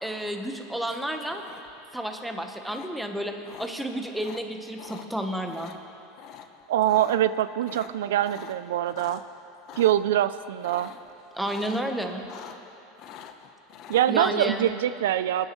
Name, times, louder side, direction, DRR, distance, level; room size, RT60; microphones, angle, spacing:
voice 1, 0.0-1.4 1.9-5.7 11.3-12.2 14.1-14.7, right 1 dB, 5° right, 4 dB, 1.0 m, -31 dB
sound 1, 1.3-1.9 2.7-2.9 3.4-3.7 4.1-4.4 4.8-5.1 5.4-5.8 6.2-6.5 6.7-7.2 7.6-9.2 9.6-9.9 10.6-11.1 11.4-11.8 12.1-12.7 13.0-14.1, left 9 dB, 50° left, 0.8 m, -44 dB
voice 2, 6.7-9.2 9.8-10.9 13.9-15.5, right 12 dB, 90° right, 14 dB, 0.3 m, -24 dB
25.5 x 10.0 x 3.1 m, 2.7 s
supercardioid pair, 130°, 0 cm